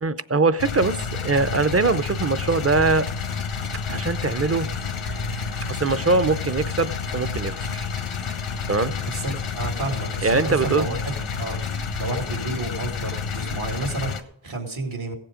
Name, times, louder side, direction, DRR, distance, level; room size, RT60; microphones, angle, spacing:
voice 1, 0.0-3.1 3.9-4.7 5.7-7.9 8.7-8.9 10.2-10.9, right 3 dB, 30° right, 14 dB, 0.6 m, -22 dB
sound 1, 0.6-14.2, left 6 dB, 85° left, 1.0 m, -29 dB
sound 2, 1.2-14.2, right 1 dB, 60° right, 2.9 m, -45 dB
voice 2, 9.1-11.0 11.4-11.6 12.0-15.1, right 2 dB, 75° right, 3 dB, 2.4 m, -31 dB
16.5 x 7.5 x 5.1 m, 0.73 s
wide cardioid pair, 55°, 48 cm